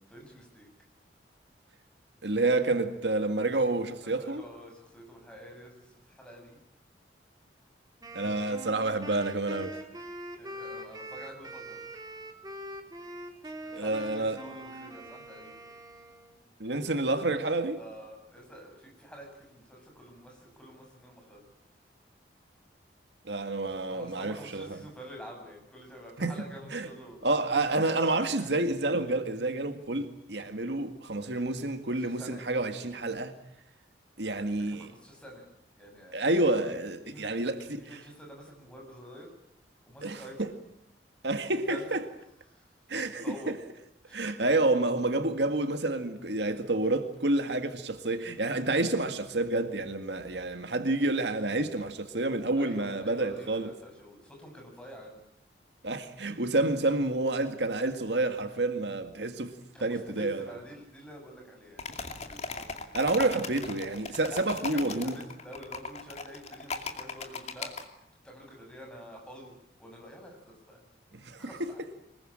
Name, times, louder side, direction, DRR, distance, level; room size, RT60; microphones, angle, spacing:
voice 1, 0.1-0.7 4.0-6.6 8.3-8.4 10.4-11.8 13.8-15.7 17.8-21.5 23.9-28.5 32.0-32.4 34.2-35.5 35.8-36.2 37.0-39.3 39.9-40.4 41.4-41.8 42.5-43.5 44.0-44.2 48.1-48.4 52.5-55.2 59.7-62.6 64.3-67.7 68.2-69.5 69.8-70.8 71.4-72.0, equal, 5° left, 7.9 m, -48 dB
voice 2, 2.2-4.4 8.1-9.8 13.7-14.4 16.6-17.8 23.3-24.8 26.2-26.3 26.7-26.9 27.2-33.3 34.2-34.9 36.1-38.0 40.0-40.5 41.2-42.0 42.9-43.6 44.1-53.7 55.8-59.5 59.8-60.5 62.9-65.2 71.2-71.7, right 2 dB, 75° right, 2.0 m, -29 dB
Wind instrument woodwind instrument, 8.0-16.4, right 1 dB, 20° right, 3.1 m, -43 dB
sound 1, 61.8-67.8, left 4 dB, 40° left, 2.5 m, -38 dB
25.5 x 21.5 x 8.9 m
head